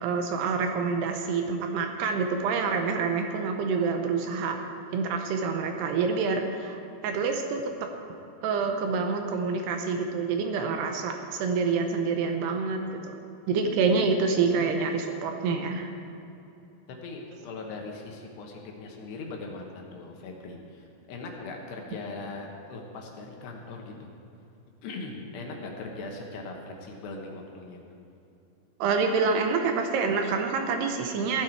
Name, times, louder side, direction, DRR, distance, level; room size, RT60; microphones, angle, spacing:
voice 1, 0.0-4.6 4.9-6.8 7.0-7.6 8.4-13.2 13.5-15.9 28.8-31.4, right 5 dB, 75° right, 4 dB, 2.7 m, -27 dB
voice 2, 17.0-24.1 24.8-27.8, left 3 dB, 70° left, 1 dB, 3.2 m, -40 dB
16.0 x 11.5 x 4.6 m, 2.8 s
omnidirectional pair, 5.2 m